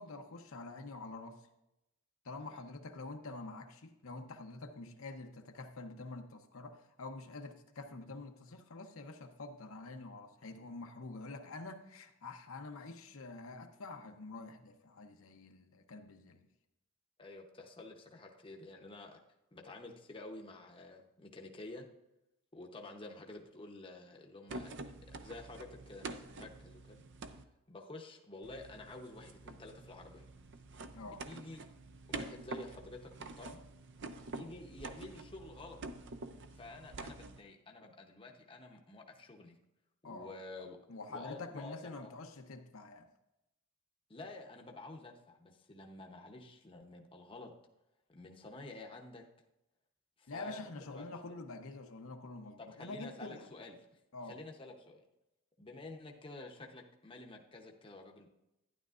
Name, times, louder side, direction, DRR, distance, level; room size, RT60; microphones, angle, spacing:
voice 1, 0.0-1.4 2.2-16.4 30.9-31.3 40.0-40.4 40.9-43.1 50.3-53.5 54.1-54.4, left 3 dB, 70° left, 5 dB, 0.7 m, -47 dB
voice 2, 17.2-19.2 19.5-21.9 22.5-24.8 25.1-27.0 27.7-30.2 31.0-31.6 32.1-33.6 34.3-35.8 36.6-39.6 40.0-40.8 41.1-41.7 42.0-42.2 44.1-47.5 48.1-49.2 50.2-51.4 52.6-53.8 54.3-55.0 55.6-58.3, left 2 dB, 25° left, 1 dB, 0.8 m, -50 dB
sound 1, 24.5-27.4 28.4-37.4, right 3 dB, 55° right, 0.6 m, -47 dB
12.0 x 10.0 x 2.5 m, 0.90 s
head